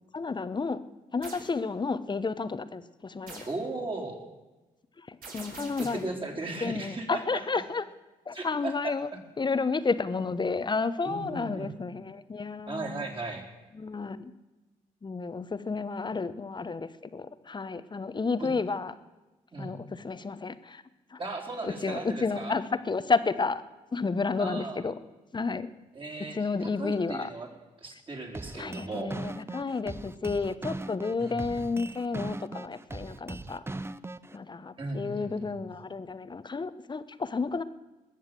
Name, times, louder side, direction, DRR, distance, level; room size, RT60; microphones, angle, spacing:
voice 1, 0.1-0.8 1.1-3.5 5.0-6.1 6.6-7.8 8.3-9.1 9.4-13.0 13.7-14.3 15.0-18.9 19.6-20.8 21.1-21.2 21.6-23.6 23.9-25.0 25.3-25.7 26.3-27.3 28.5-33.6 34.3-37.6, left 4 dB, 30° left, 13 dB, 1.0 m, -31 dB
sound 1, 1.2-1.5 3.3-3.6 5.2-6.1, right 3 dB, 70° right, 4.2 m, -44 dB
voice 2, 3.5-4.2 6.0-7.4 8.3-8.7 11.0-11.7 12.7-13.5 18.4-18.5 19.5-19.8 21.2-22.5 24.4-24.8 25.9-27.5 27.8-29.2 31.2-31.5 34.8-35.6, right 3 dB, 35° right, 1 dB, 4.0 m, -37 dB
sound 2, 28.3-34.4, right 2 dB, 15° right, 0.7 m, -39 dB
20.5 x 7.3 x 7.6 m, 1.1 s
supercardioid pair, 60°, 15 cm